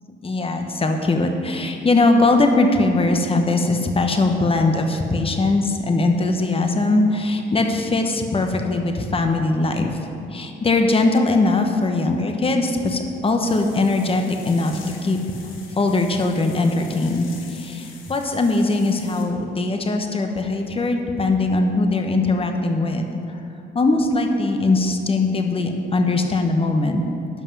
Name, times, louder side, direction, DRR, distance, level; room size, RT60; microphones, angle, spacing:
voice 1, 0.2-10.0 10.3-15.2 15.8-23.4 23.7-27.0, left 2 dB, 30° left, 4 dB, 1.0 m, -20 dB
sound 1, 13.4-19.2, left 5 dB, 85° left, 1.2 m, -44 dB
12.0 x 5.4 x 5.4 m, 2.8 s
cardioid pair, 90°, 20 cm